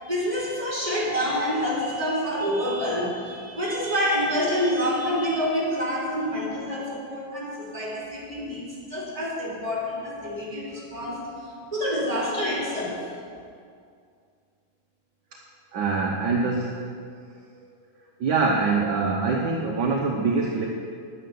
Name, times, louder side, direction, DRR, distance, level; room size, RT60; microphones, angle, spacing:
voice 1, 0.0-11.3 11.7-13.0, equal, 15° right, -6 dB, 3.7 m, -27 dB
voice 2, 15.7-16.8 18.2-20.7, right 4 dB, 60° right, 0 dB, 1.5 m, -24 dB
10.5 x 9.8 x 7.0 m, 2.2 s
omnidirectional pair, 2.2 m